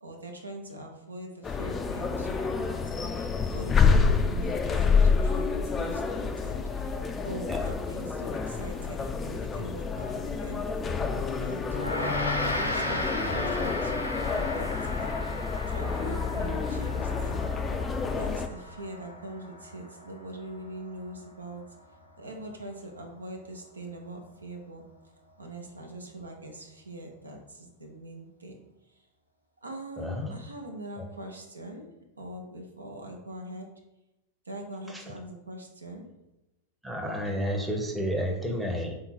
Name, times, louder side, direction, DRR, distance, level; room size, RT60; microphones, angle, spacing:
voice 1, 0.0-7.0 7.2-14.0 14.3-15.0 15.4-17.7 18.1-21.6 22.2-24.8 25.4-28.6 28.9-29.0 29.6-31.9 32.2-33.7 34.4-36.1, right 1 dB, 80° right, 2 dB, 0.6 m, -42 dB
sound 1, 1.4-18.5, left 5 dB, 20° left, 0.3 m, -28 dB
Gong, 11.7-21.3, left 1 dB, 80° left, 0.6 m, -35 dB
voice 2, 13.2-13.6 30.0-30.4 34.9-35.0 36.8-38.9, equal, 5° right, 1 dB, 0.7 m, -31 dB
3.5 x 2.8 x 4.3 m, 0.94 s
figure-of-eight pair, 90°, 0 cm